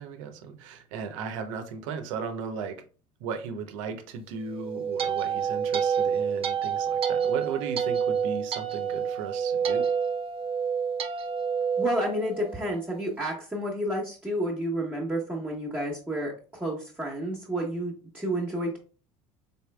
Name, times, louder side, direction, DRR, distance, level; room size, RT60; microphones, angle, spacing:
voice 1, 0.0-2.8 3.2-9.8, right 6 dB, 80° right, 0.7 m, -36 dB
sound 1, 4.5-12.8, right 7 dB, 35° right, 0.6 m, -28 dB
voice 2, 11.8-18.8, equal, 10° right, 1.1 m, -30 dB
3.9 x 3.5 x 2.2 m
hypercardioid pair, 75°, 16 cm